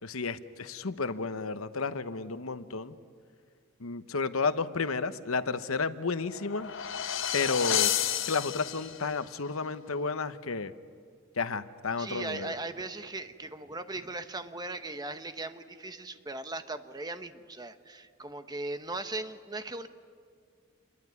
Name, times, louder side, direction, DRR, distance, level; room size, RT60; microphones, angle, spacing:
voice 1, 0.0-3.0 3.8-6.7 7.3-7.9 8.3-10.7 11.4-12.5, left 4 dB, 90° left, 12 dB, 1.0 m, -32 dB
sound 1, 6.2-9.2, left 10 dB, 65° left, 0.9 m, -31 dB
voice 2, 12.0-19.9, right 2 dB, 20° right, 9 dB, 1.1 m, -38 dB
27.5 x 21.5 x 9.7 m, 2.1 s
head